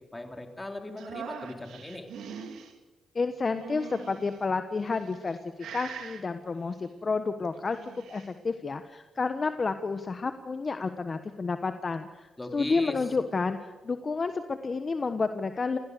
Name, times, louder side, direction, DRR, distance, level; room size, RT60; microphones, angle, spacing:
voice 1, 0.1-2.1 12.4-13.1, left 1 dB, 20° left, 4 dB, 3.8 m, -37 dB
sound 1, 1.0-2.7 3.5-4.4 5.0-5.3 5.6-6.2 7.5-8.3, right 7 dB, 85° right, 2.6 m, -42 dB
voice 2, 3.1-5.4 5.7-15.8, left 4 dB, 40° left, 9 dB, 1.2 m, -30 dB
30.0 x 16.0 x 6.8 m, 1.2 s
cardioid pair, 70°, 0 cm